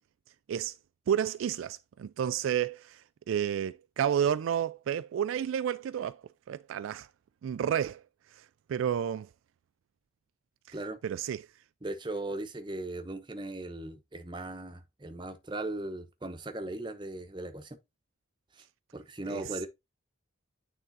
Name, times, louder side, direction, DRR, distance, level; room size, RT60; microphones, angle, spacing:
voice 1, 1.1-6.2 6.5-7.1 7.4-8.0 8.3-9.3 11.0-11.5 19.3-19.6, right 9 dB, 85° right, 0.3 m, -31 dB
voice 2, 11.8-17.8 18.5-18.6 18.9-19.7, right 2 dB, 25° right, 0.9 m, -38 dB
9.1 x 3.7 x 3.9 m
head